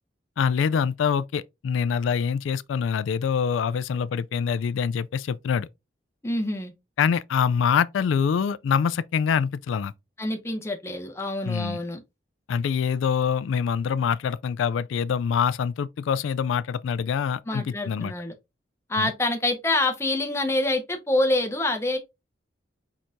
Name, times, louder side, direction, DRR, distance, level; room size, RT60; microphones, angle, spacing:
voice 1, 0.4-5.7 7.0-9.9 11.4-11.8 12.5-18.1 19.0-19.1, left 7 dB, 85° left, 0.3 m, -25 dB
voice 2, 6.2-6.7 10.2-12.0 17.5-18.3 18.9-22.0, left 2 dB, 15° left, 0.7 m, -26 dB
4.7 x 4.4 x 2.6 m
head